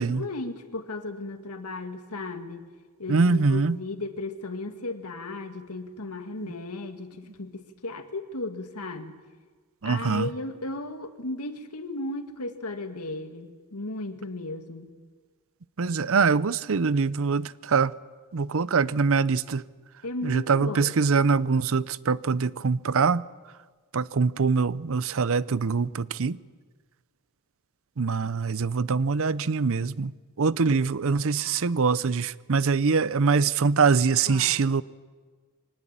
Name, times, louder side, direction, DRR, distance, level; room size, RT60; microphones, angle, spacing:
voice 1, 0.0-2.7 3.0-9.2 9.8-14.9 20.0-21.0 30.7-30.8 34.3-34.7, left 2 dB, 90° left, 1.9 m, -35 dB
voice 2, 3.1-3.8 9.8-10.2 15.8-17.9 18.3-19.6 20.3-23.2 23.9-26.4 28.0-30.1 30.4-34.8, right 5 dB, 65° right, 0.6 m, -23 dB
24.0 x 18.5 x 8.9 m
head